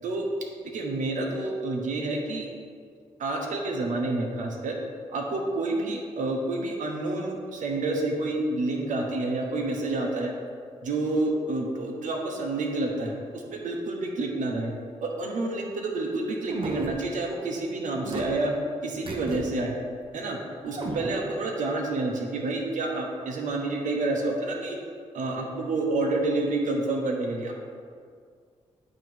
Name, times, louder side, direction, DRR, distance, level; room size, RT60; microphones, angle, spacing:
voice 1, 0.7-2.5 3.2-4.7 5.1-10.3 10.8-14.7 15.0-18.5 18.8-19.7 20.1-20.4 20.6-24.8 25.1-27.5, right 2 dB, 80° right, 1 dB, 1.0 m, -29 dB
sound 1, 16.5-17.0 18.0-18.3 19.1-19.4 19.8-19.9 20.6-21.2, right 3 dB, 45° right, 0.9 m, -32 dB
8.8 x 2.9 x 6.2 m, 2.1 s
cardioid pair, 75°, 13 cm